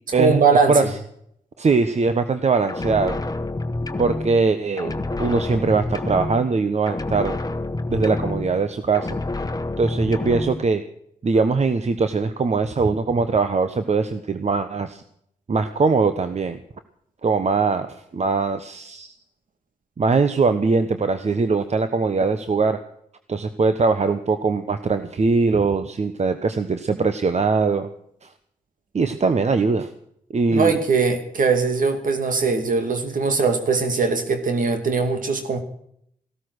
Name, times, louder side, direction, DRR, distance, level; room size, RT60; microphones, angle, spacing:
voice 1, 0.1-0.9 30.5-35.6, right 4 dB, 70° right, 7 dB, 2.6 m, -20 dB
voice 2, 1.6-3.2 4.0-7.4 7.9-9.1 9.8-10.8 11.2-15.0 15.5-16.6 17.2-19.1 20.0-22.8 23.3-27.9 28.2-28.3 28.9-29.9 30.3-30.7, right 4 dB, 50° right, 9 dB, 1.2 m, -21 dB
sound 1, 2.7-4.5 4.8-6.6 6.9-8.7 8.9-10.6, left 2 dB, 25° left, 1.3 m, -28 dB
16.5 x 13.0 x 6.3 m, 0.70 s
cardioid pair, 55°, 14 cm